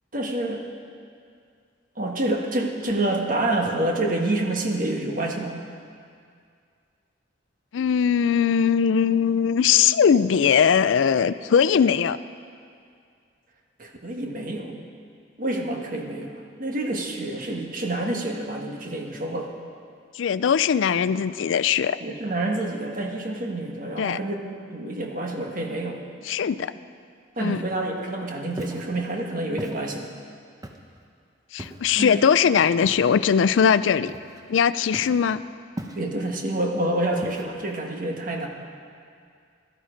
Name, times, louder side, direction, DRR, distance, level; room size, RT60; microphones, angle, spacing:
voice 1, 0.1-0.6 2.0-5.6 13.8-14.8 15.4-19.5 22.0-26.0 27.4-30.1 31.9-32.2 35.9-38.5, right 1 dB, 45° right, 1 dB, 1.5 m, -28 dB
voice 2, 7.7-12.2 20.1-22.0 24.0-24.2 26.2-26.7 27.4-27.6 31.5-34.1 34.5-35.4, left 7 dB, 80° left, 15 dB, 0.4 m, -20 dB
Walk footsteps, 28.5-28.9 29.6-29.8 30.6-31.0 31.6-31.9 32.8-33.1 34.1-34.5 34.9-35.2 35.8-36.3 37.2-37.7, right 1 dB, 20° right, 0.9 m, -38 dB
16.5 x 12.5 x 5.1 m, 2.3 s
head